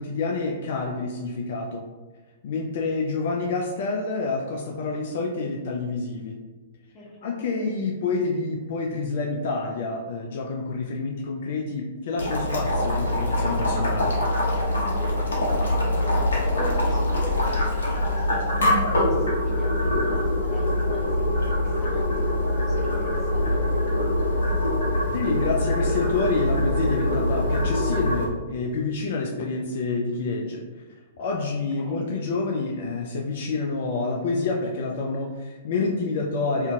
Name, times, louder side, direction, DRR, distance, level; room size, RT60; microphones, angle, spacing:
voice 1, 0.0-1.8 2.4-6.4 7.2-14.1 25.1-30.6 31.2-36.7, left 3 dB, 55° left, 0 dB, 0.3 m, -28 dB
voice 2, 6.9-7.7 15.4-24.0 31.8-32.1, equal, 15° left, -5 dB, 0.7 m, -40 dB
Boiling, 12.2-28.2, left 1 dB, 70° left, 0.7 m, -24 dB
2.7 x 2.5 x 2.2 m, 1.3 s
figure-of-eight pair, 110°, 0 cm